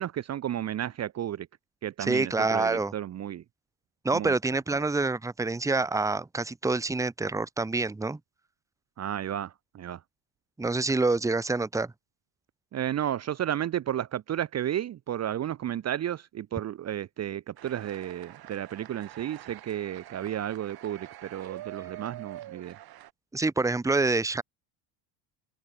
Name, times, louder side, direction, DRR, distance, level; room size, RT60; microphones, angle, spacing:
voice 1, 0.0-1.5 1.8-3.4 4.1-4.3 4.7-4.9 9.0-10.0 12.7-22.8, right 11 dB, 35° right, 1.0 m, -33 dB
voice 2, 2.0-2.9 4.0-8.2 10.6-11.9 23.3-24.4, right 3 dB, 5° right, 1.2 m, -27 dB
sound 1, 17.6-23.1, right 13 dB, 50° right, 3.7 m, -45 dB
open air
cardioid pair, 160°, 47 cm